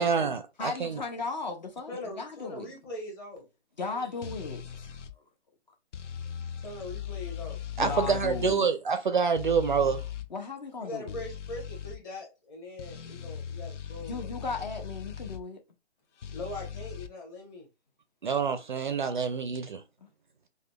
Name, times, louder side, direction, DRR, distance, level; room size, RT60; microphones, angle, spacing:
voice 1, 0.0-1.0 7.8-10.0 18.2-19.8, right 6 dB, 45° right, 0.4 m, -27 dB
voice 2, 0.6-2.7 3.8-4.9 7.8-8.7 10.3-11.2 14.1-15.6 20.0-20.1, left 4 dB, 40° left, 0.5 m, -36 dB
voice 3, 1.9-3.5 3.8-4.2 6.6-7.6 10.8-14.3 14.8-14.9 16.3-17.7, left 2 dB, 20° left, 1.0 m, -41 dB
sound 1, 4.2-5.1 5.9-8.6 9.4-10.3 11.1-12.0 12.8-15.4 16.2-17.1, left 9 dB, 90° left, 0.5 m, -39 dB
4.9 x 2.2 x 2.2 m
hypercardioid pair, 150°, 35 cm